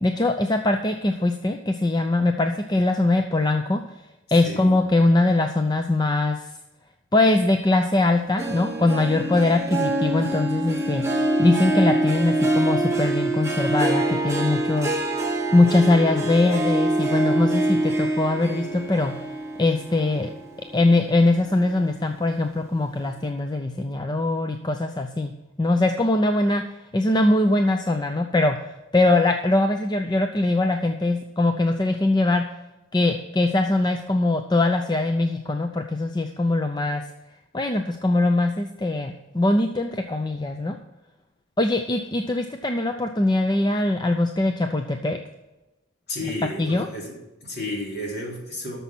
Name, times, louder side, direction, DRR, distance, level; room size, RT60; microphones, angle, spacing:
voice 1, 0.0-3.8 4.3-6.4 7.1-11.0 11.4-15.0 15.5-19.1 19.6-20.3 20.7-25.3 25.6-26.6 26.9-28.6 28.9-32.4 32.9-37.0 37.5-40.8 41.6-45.2 46.6-46.9, left 2 dB, 20° left, 5 dB, 0.5 m, -22 dB
voice 2, 4.4-4.8 46.1-48.8, left 1 dB, 50° left, -1 dB, 3.4 m, -32 dB
Harp, 8.4-21.1 21.5-21.9 22.4-22.5, right 2 dB, 15° right, 1.3 m, -25 dB
12.5 x 6.9 x 6.1 m, 1.0 s
head